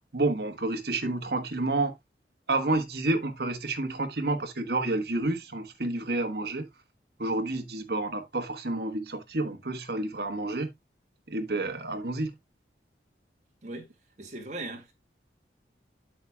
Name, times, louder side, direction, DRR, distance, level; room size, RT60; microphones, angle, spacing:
voice 1, 0.1-1.9 2.5-6.7 7.2-10.7 11.3-12.3, right 2 dB, 65° right, 1.3 m, -29 dB
voice 2, 14.2-14.9, right 2 dB, 40° right, 2.1 m, -38 dB
8.4 x 7.7 x 2.3 m
head